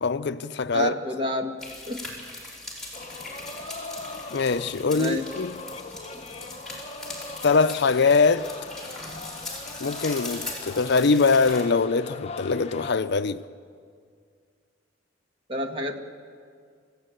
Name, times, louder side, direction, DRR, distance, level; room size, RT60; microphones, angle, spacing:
voice 1, 0.0-1.0 4.3-5.6 7.4-8.5 9.8-13.4, left 4 dB, 60° left, 0.6 m, -22 dB
voice 2, 0.7-1.6 1.9-2.0 5.0-5.2 6.1-6.3 15.5-16.0, equal, 30° right, 1.8 m, -28 dB
sound 1, 1.6-11.6, left 2 dB, 5° left, 5.3 m, -40 dB
sound 2, 2.9-12.9, left 3 dB, 35° left, 1.0 m, -40 dB
26.0 x 16.0 x 9.1 m
head